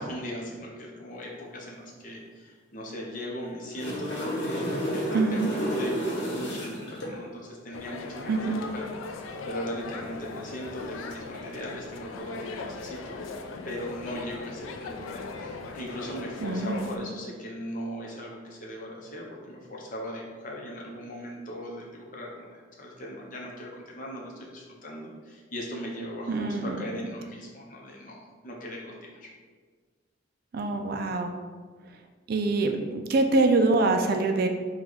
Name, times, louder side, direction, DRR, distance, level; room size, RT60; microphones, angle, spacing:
voice 1, 0.0-13.2 13.7-29.3, equal, 40° left, -2 dB, 0.7 m, -39 dB
sound 1, 3.5-7.1 10.9-11.1, equal, 60° left, 1.0 m, -30 dB
voice 2, 5.1-5.5 8.3-8.6 16.4-16.9 26.3-26.8 30.5-31.3 32.3-34.5, right 3 dB, 50° right, 5 dB, 0.3 m, -24 dB
sound 2, 7.7-17.0, left 3 dB, 90° left, 0.4 m, -39 dB
4.6 x 2.3 x 3.9 m, 1.5 s
head